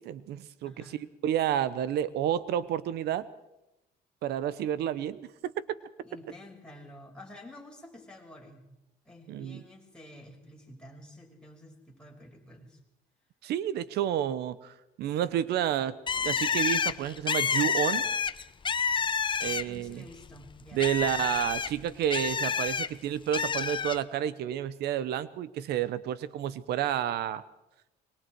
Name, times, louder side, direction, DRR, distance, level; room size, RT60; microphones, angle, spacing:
voice 1, 0.0-3.3 4.2-5.5 9.3-9.6 13.4-16.0 16.2-18.1 19.4-20.0 20.7-27.4, right 10 dB, 75° right, 16 dB, 1.0 m, -30 dB
voice 2, 0.6-1.0 6.0-8.7 9.1-12.8 19.4-21.3, left 1 dB, 5° left, -1 dB, 5.9 m, -50 dB
Bird, 16.1-19.9 20.3-22.9 23.3-24.0, left 6 dB, 30° left, 0.8 m, -29 dB
25.5 x 22.0 x 4.7 m, 0.91 s
cardioid pair, 110°, 17 cm